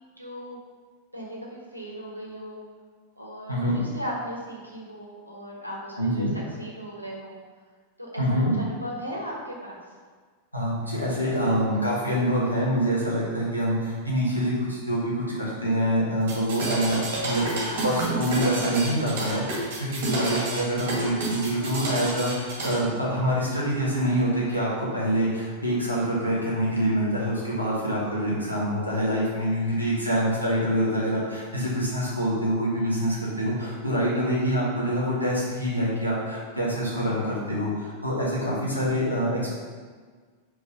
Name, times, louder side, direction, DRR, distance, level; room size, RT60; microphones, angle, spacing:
voice 1, 0.2-0.6 1.1-2.6 3.2-6.3 6.6-7.4 8.0-8.2 8.5-9.8 20.1-20.2, equal, 85° right, -2 dB, 1.3 m, -37 dB
voice 2, 6.0-6.3 8.2-8.5 10.5-17.5 17.8-39.5, equal, 90° left, -6 dB, 1.9 m, -26 dB
sound 1, 16.2-22.8, right 2 dB, 55° right, 1.9 m, -30 dB
5.3 x 4.6 x 5.4 m, 1.5 s
figure-of-eight pair, 90°, 0 cm